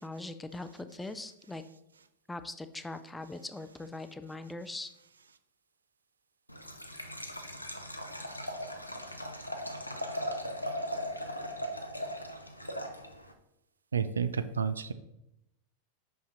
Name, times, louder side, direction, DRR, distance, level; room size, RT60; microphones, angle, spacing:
voice 1, 0.0-1.6 2.3-4.9, left 2 dB, 10° left, 10 dB, 0.4 m, -41 dB
Liquid, 6.5-13.3, equal, 90° left, 0.7 m, -38 dB
voice 2, 13.9-14.9, right 6 dB, 70° right, 12 dB, 0.4 m, -30 dB
5.6 x 5.5 x 3.9 m, 0.84 s
figure-of-eight pair, 90°, 0 cm